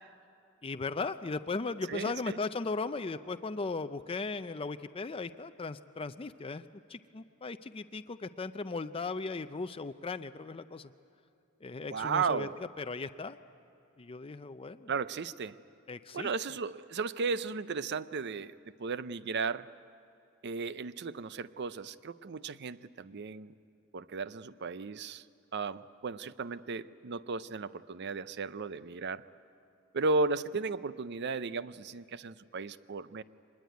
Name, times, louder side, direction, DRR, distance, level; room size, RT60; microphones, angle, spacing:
voice 1, 0.6-6.6 6.9-10.9 11.6-12.5 12.8-13.4 14.0-14.9 15.9-16.3, left 3 dB, 25° left, 10 dB, 0.5 m, -37 dB
voice 2, 1.9-2.4 11.9-12.5 14.9-15.6 16.1-18.5 18.8-19.7 20.4-23.5 23.9-25.2 25.5-29.2 29.9-33.2, right 4 dB, 55° right, 15 dB, 0.5 m, -35 dB
24.0 x 20.5 x 9.4 m, 2.7 s
head